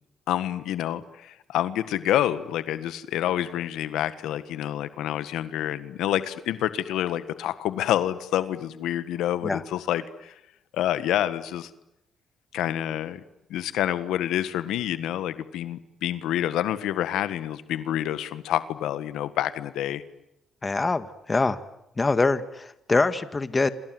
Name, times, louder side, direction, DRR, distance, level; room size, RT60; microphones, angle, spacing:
voice 1, 0.3-10.4 10.7-11.7 12.5-13.2 13.5-20.0, left 12 dB, 85° left, 13 dB, 1.6 m, -28 dB
voice 2, 20.6-21.6 22.0-23.7, left 3 dB, 25° left, 12 dB, 1.9 m, -24 dB
27.5 x 27.0 x 7.9 m, 0.85 s
cardioid pair, 90°, 0 cm